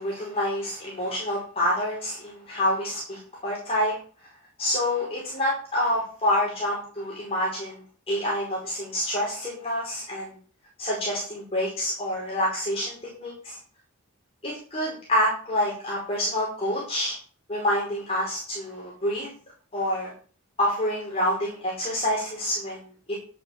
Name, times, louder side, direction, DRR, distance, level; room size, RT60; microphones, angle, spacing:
voice 1, 0.0-3.9 4.6-7.8 8.1-10.3 10.8-13.6 14.4-17.2 17.5-19.3 19.7-20.1 20.6-22.8 23.1-23.2, left 1 dB, 25° left, -4 dB, 5.1 m, -27 dB
11.0 x 8.6 x 7.5 m, 0.41 s
head